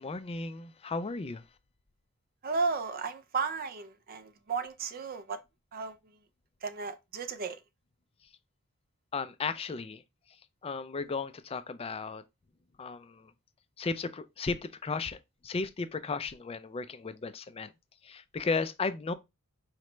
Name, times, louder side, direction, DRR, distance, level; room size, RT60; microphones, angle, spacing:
voice 1, 0.0-1.4 9.1-10.0 10.6-12.2 12.8-13.3 13.8-17.7 18.0-19.1, left 4 dB, 25° left, 0.4 m, -35 dB
voice 2, 2.4-5.4 5.7-5.9 6.6-7.6, right 4 dB, 40° right, 0.4 m, -34 dB
4.9 x 3.1 x 3.2 m
head